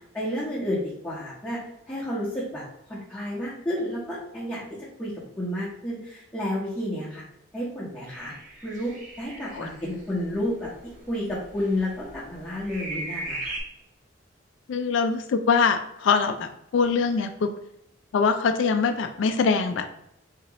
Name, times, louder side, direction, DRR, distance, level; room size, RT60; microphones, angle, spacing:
voice 1, 0.1-1.6 1.9-4.6 5.0-7.2 7.5-8.3 8.6-10.7 11.1-13.6, left 1 dB, 10° left, -10 dB, 0.9 m, -31 dB
sound 1, 8.1-13.6, right 2 dB, 40° right, 0.9 m, -38 dB
voice 2, 14.7-17.5 18.1-19.9, left 5 dB, 75° left, 8 dB, 0.3 m, -23 dB
3.6 x 2.9 x 2.9 m, 0.81 s
head